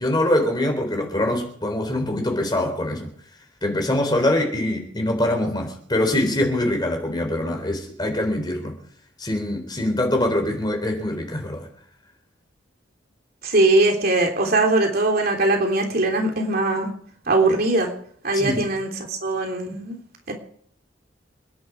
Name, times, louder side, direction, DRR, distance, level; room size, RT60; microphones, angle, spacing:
voice 1, 0.0-3.1 3.6-8.8 9.2-11.7 18.3-18.6, left 1 dB, 25° left, 3 dB, 3.9 m, -23 dB
voice 2, 13.4-16.9 17.3-17.9 18.2-20.0 20.3-20.4, right 2 dB, 50° right, 2 dB, 3.1 m, -21 dB
28.0 x 10.5 x 4.8 m, 0.62 s
head